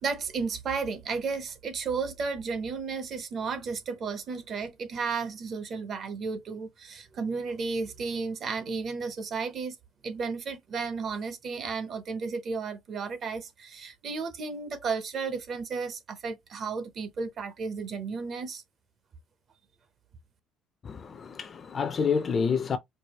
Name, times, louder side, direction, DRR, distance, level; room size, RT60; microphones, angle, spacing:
voice 1, 0.0-9.8 10.0-18.6, right 5 dB, 35° right, 0.7 m, -33 dB
voice 2, 20.8-22.8, left 6 dB, 25° left, 0.5 m, -28 dB
4.7 x 2.3 x 2.9 m
cardioid pair, 180°, 0 cm